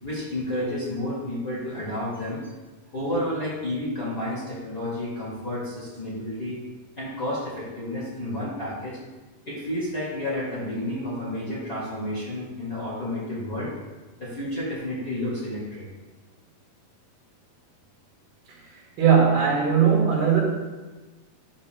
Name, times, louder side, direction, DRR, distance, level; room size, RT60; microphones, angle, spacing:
voice 1, 0.0-2.5 2.9-6.6 7.0-9.0 9.4-13.7 14.2-15.9, left 1 dB, 35° left, -6 dB, 1.9 m, -31 dB
voice 2, 19.0-20.4, right 7 dB, 75° right, -4 dB, 3.8 m, -19 dB
13.0 x 8.5 x 2.2 m, 1.2 s
omnidirectional pair, 4.5 m